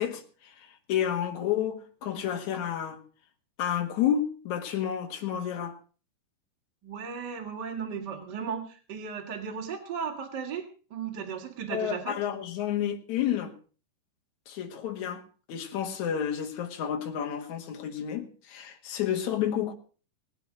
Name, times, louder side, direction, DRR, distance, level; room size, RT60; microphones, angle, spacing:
voice 1, 0.0-3.0 3.6-5.8 11.7-13.5 14.5-15.2 15.5-19.7, left 9 dB, 60° left, 3.0 m, -30 dB
voice 2, 6.8-12.2, right 6 dB, 35° right, 2.0 m, -36 dB
18.5 x 9.1 x 6.2 m
omnidirectional pair, 3.9 m